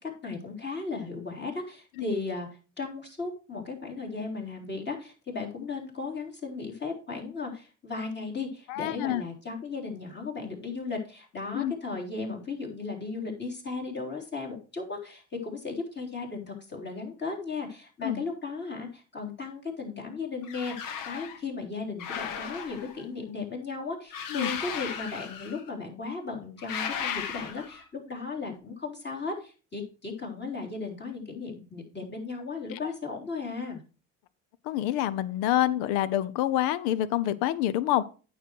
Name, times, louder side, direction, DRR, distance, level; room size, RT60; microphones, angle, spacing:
voice 1, 0.0-2.5 2.8-33.8, left 4 dB, 30° left, 0 dB, 3.7 m, -36 dB
voice 2, 8.7-9.2 11.5-11.7 18.0-18.2 24.3-24.5 34.6-38.1, left 13 dB, 85° left, 18 dB, 0.7 m, -27 dB
sound 1, 20.4-21.4 22.0-23.0 24.1-25.7 26.6-27.8, left 7 dB, 70° left, 1.3 m, -36 dB
9.0 x 6.4 x 4.6 m, 0.35 s
supercardioid pair, 85°, 35 cm